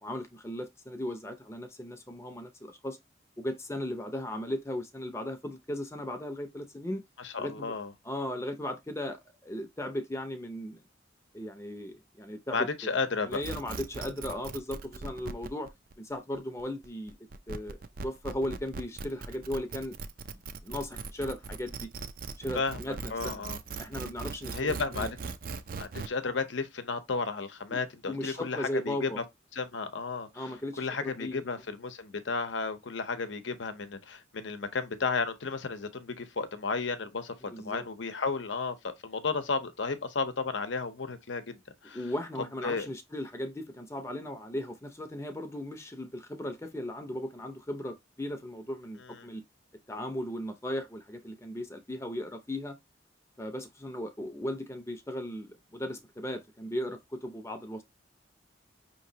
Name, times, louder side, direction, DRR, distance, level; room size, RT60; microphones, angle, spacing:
voice 1, 0.0-3.0 3.4-7.0 7.4-7.8 8.0-10.8 11.3-12.7 13.2-15.7 16.0-17.2 17.5-20.0 20.3-21.9 22.4-23.4 23.8-25.1 27.7-27.8 28.1-29.2 30.3-31.4 37.4-37.8 41.9-49.4 49.9-52.8 53.4-57.8, left 1 dB, 15° left, 0.6 m, -37 dB
voice 2, 7.2-7.9 12.5-13.4 22.5-22.8 23.1-23.6 24.5-25.1 25.8-29.2 29.5-42.0 42.6-42.9 49.0-49.3, left 4 dB, 75° left, 0.8 m, -33 dB
sound 1, 13.3-26.1, right 4 dB, 50° right, 0.4 m, -39 dB
5.7 x 3.0 x 2.8 m
head